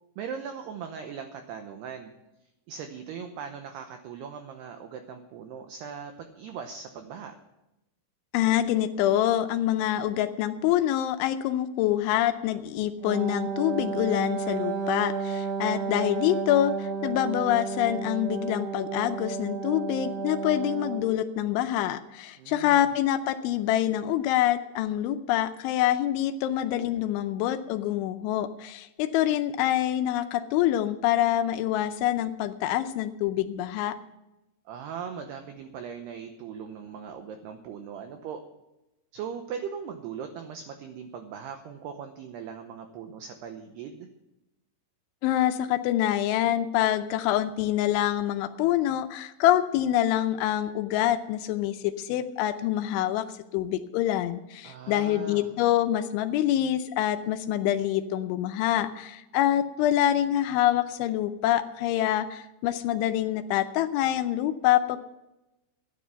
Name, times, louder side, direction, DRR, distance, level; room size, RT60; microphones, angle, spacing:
voice 1, 0.2-2.1 2.7-7.4 22.4-22.9 34.7-38.4 39.1-44.1 54.6-55.5, right 7 dB, 80° right, 6 dB, 2.4 m, -39 dB
voice 2, 8.3-34.0 45.2-53.3 53.5-65.0, left 12 dB, 80° left, 9 dB, 2.8 m, -26 dB
Wind instrument woodwind instrument, 13.0-21.2, right 5 dB, 65° right, 2.7 m, -32 dB
14.0 x 10.0 x 5.7 m, 0.95 s
omnidirectional pair, 5.9 m